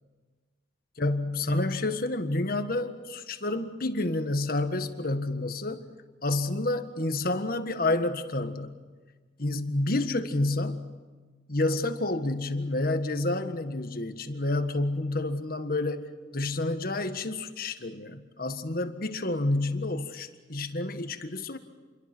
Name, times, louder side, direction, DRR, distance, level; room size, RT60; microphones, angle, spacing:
voice 1, 1.0-5.8 6.2-8.7 9.4-10.9 11.5-21.6, left 2 dB, 55° left, 8 dB, 1.6 m, -29 dB
28.5 x 22.5 x 6.2 m, 1.4 s
head